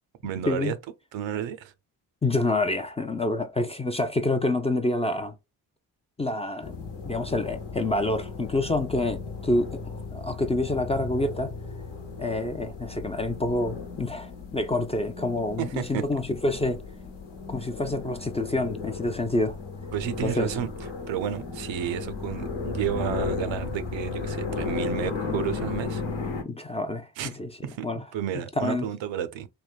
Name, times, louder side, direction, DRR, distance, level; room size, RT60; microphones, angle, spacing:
voice 1, 0.2-0.8 1.1-1.7 15.6-16.0 19.9-20.7 21.1-26.0 27.2-27.4 27.6-27.9 28.1-29.5, right 10 dB, 80° right, 0.5 m, -31 dB
voice 2, 2.2-5.3 6.2-6.7 7.1-11.5 12.2-16.8 17.5-19.6 20.2-20.5 26.5-27.5 27.8-28.0 28.6-28.9, left 2 dB, 15° left, 0.3 m, -27 dB
sound 1, 6.6-26.4, left 4 dB, 70° left, 0.9 m, -35 dB
3.3 x 2.1 x 2.3 m
cardioid pair, 60°, 45 cm